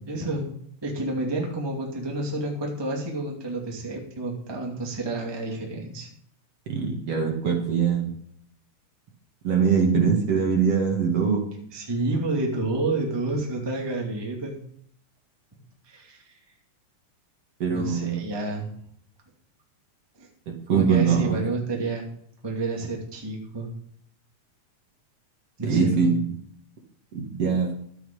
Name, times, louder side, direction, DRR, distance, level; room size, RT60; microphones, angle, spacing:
voice 1, 0.1-0.5 0.8-6.1 11.7-14.6 15.9-16.2 17.7-18.7 20.2-20.3 20.7-22.1 22.4-23.7 25.6-26.1, right 2 dB, 10° right, -1 dB, 2.0 m, -29 dB
voice 2, 6.7-8.2 9.4-11.4 17.6-18.2 20.5-21.4 25.6-26.3 27.1-27.7, right 6 dB, 50° right, 1 dB, 2.8 m, -22 dB
12.0 x 9.1 x 5.5 m, 0.63 s
omnidirectional pair, 3.7 m